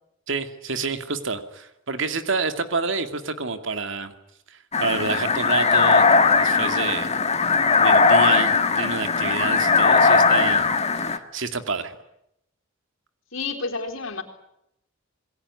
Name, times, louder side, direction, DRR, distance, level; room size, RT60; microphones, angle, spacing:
voice 1, 0.3-4.1 4.5-7.1 7.8-10.7 10.9-12.0, right 4 dB, 70° right, 9 dB, 2.4 m, -28 dB
sound 1, 4.7-11.2, left 4 dB, 35° left, 1.8 m, -19 dB
voice 2, 13.3-14.2, left 4 dB, 80° left, 4 dB, 4.1 m, -30 dB
27.0 x 21.0 x 9.8 m, 0.79 s
head